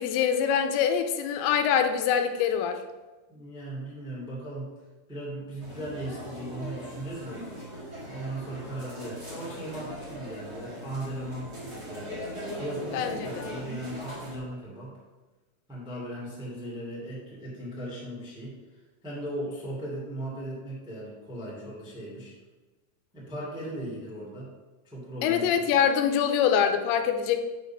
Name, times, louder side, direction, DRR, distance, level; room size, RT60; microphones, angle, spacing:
voice 1, 0.0-2.8 12.9-13.5 25.2-27.5, left 8 dB, 90° left, 7 dB, 2.9 m, -24 dB
voice 2, 3.3-4.7 5.1-7.4 8.0-12.1 12.5-14.9 15.7-18.5 19.0-22.3 23.1-24.5 24.8-25.4, right 1 dB, ahead, -6 dB, 1.1 m, -37 dB
sound 1, 5.6-14.4, equal, 75° right, 0.9 m, -40 dB
9.0 x 4.1 x 5.7 m, 1.2 s
omnidirectional pair, 5.1 m